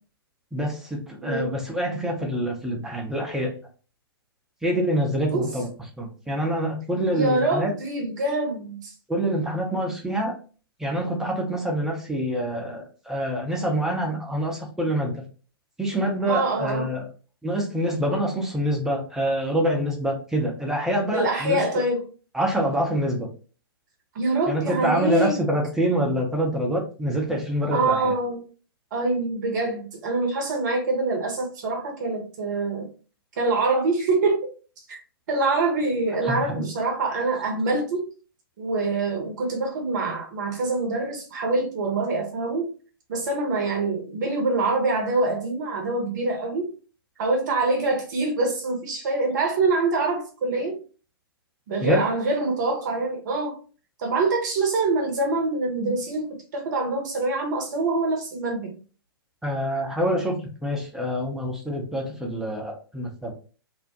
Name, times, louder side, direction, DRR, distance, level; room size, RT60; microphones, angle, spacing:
voice 1, 0.5-3.6 4.6-5.7 6.0-7.7 9.1-10.4 10.8-15.2 15.8-17.1 17.4-21.6 22.3-23.3 24.5-28.1 36.2-36.7 51.8-52.1 59.4-63.3, equal, 5° right, -1 dB, 0.6 m, -26 dB
voice 2, 1.2-1.5 5.3-5.5 7.1-8.9 16.3-16.9 21.1-22.0 24.1-25.4 27.7-28.4 28.9-32.9 33.4-34.5 34.9-35.0 35.3-38.1 38.6-42.7 43.1-46.7 47.2-50.8 51.7-53.6 54.0-58.8, right 3 dB, 50° right, 2 dB, 0.7 m, -25 dB
2.5 x 2.1 x 2.7 m, 0.37 s
figure-of-eight pair, 115°, 13 cm